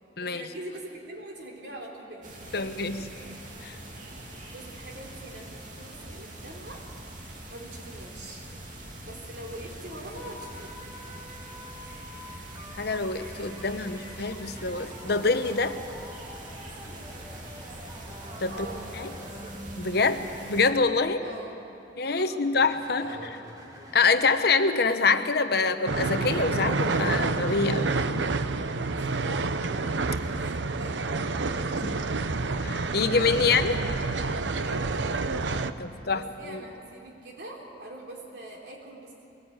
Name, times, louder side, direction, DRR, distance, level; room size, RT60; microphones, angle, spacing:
voice 1, 0.2-3.4 3.9-4.2 4.5-6.8 7.5-8.5 9.1-10.7 18.5-19.6 21.2-21.5 22.0-22.5 23.0-23.5 29.0-29.3 30.3-32.0 34.5-35.2 35.9-39.3, right 1 dB, 65° right, -1 dB, 3.9 m, -44 dB
sound 1, 2.2-20.7, right 1 dB, 45° right, 2.7 m, -43 dB
voice 2, 2.5-3.0 3.6-3.8 12.8-15.8 18.4-18.5 19.0-19.1 19.8-20.2 20.5-21.2 22.0-23.2 23.9-28.0 32.6-33.8 35.8-36.6, left 4 dB, 60° left, 9 dB, 1.0 m, -25 dB
sound 2, 10.4-21.8 22.3-24.4, equal, 20° right, 2.1 m, -47 dB
sound 3, 25.9-35.7, right 3 dB, 85° right, 0.8 m, -28 dB
22.5 x 18.5 x 8.9 m, 2.8 s
head